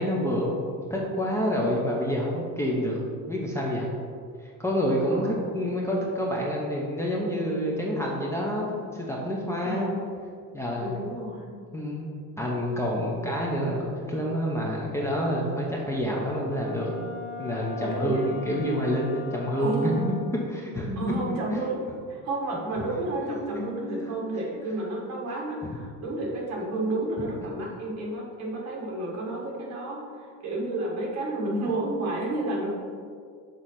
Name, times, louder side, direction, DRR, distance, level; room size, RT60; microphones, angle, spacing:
voice 1, 0.0-3.0 3.3-3.9 4.4-8.7 8.9-9.9 10.5-11.0 11.7-12.1 12.4-16.9 17.4-21.1 23.2-23.4 23.8-24.0 27.6-27.7, equal, 10° left, -3 dB, 0.6 m, -28 dB
voice 2, 5.1-5.4 9.6-10.0 10.8-11.5 17.8-18.4 19.6-20.0 21.0-30.0 30.4-32.7, right 2 dB, 55° right, -2 dB, 1.6 m, -31 dB
Wind instrument woodwind instrument, 16.4-20.4, left 4 dB, 85° left, 1.4 m, -40 dB
6.4 x 3.9 x 5.7 m, 2.1 s
cardioid pair, 165°, 33 cm